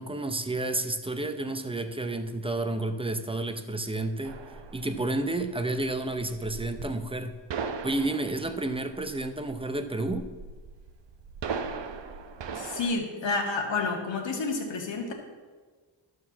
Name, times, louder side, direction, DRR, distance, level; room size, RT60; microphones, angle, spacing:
voice 1, 0.0-4.4 4.7-7.4 7.8-10.3, right 2 dB, 10° right, 8 dB, 0.6 m, -30 dB
sound 1, 4.2-12.9, right 5 dB, 65° right, 0.9 m, -39 dB
voice 2, 12.5-15.1, left 3 dB, 65° left, 1 dB, 2.0 m, -30 dB
12.0 x 4.8 x 7.1 m, 1.4 s
wide cardioid pair, 115°, 47 cm